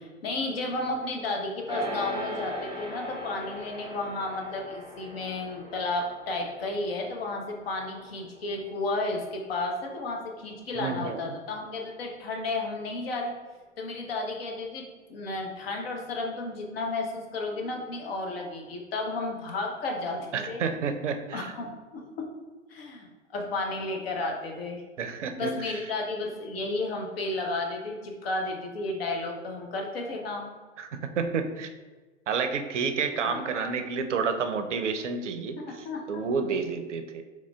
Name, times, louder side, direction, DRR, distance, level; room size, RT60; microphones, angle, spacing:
voice 1, 0.0-13.4 13.8-20.6 21.3-24.8 25.4-30.5 33.2-33.4 35.6-36.3, left 2 dB, 55° left, 1 dB, 0.7 m, -33 dB
sound 1, 1.7-11.2, equal, 10° right, 1.0 m, -40 dB
voice 2, 10.7-11.3 20.3-21.5 25.0-25.8 30.8-31.7 32.3-37.2, right 5 dB, 75° right, 7 dB, 0.5 m, -30 dB
3.6 x 3.1 x 2.2 m, 1.3 s
figure-of-eight pair, 100°, 37 cm